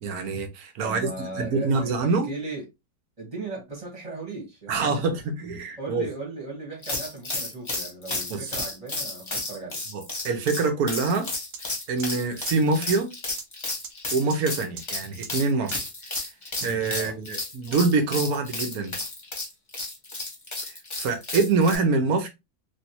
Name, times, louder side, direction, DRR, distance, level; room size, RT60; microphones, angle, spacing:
voice 1, 0.0-1.1 1.3-2.3 4.7-6.1 8.3-8.5 9.9-11.3 11.9-13.1 14.1-15.8 16.6-19.0 21.0-22.3, right 4 dB, 65° right, 1.0 m, -25 dB
voice 2, 0.8-2.7 3.2-5.1 5.8-9.8 16.9-17.2, right 3 dB, 20° right, 1.1 m, -37 dB
sound 1, 6.8-21.8, left 2 dB, 30° left, 0.5 m, -32 dB
sound 2, 11.5-11.6 12.0-12.1 12.5-12.6 12.9-13.0 13.4-13.5 13.8-13.9 14.3-14.4 14.8-14.9 15.2-15.3 15.7-15.8 16.1-16.2 16.6-16.7, right 7 dB, 85° right, 1.5 m, -37 dB
3.2 x 2.7 x 2.8 m
omnidirectional pair, 2.2 m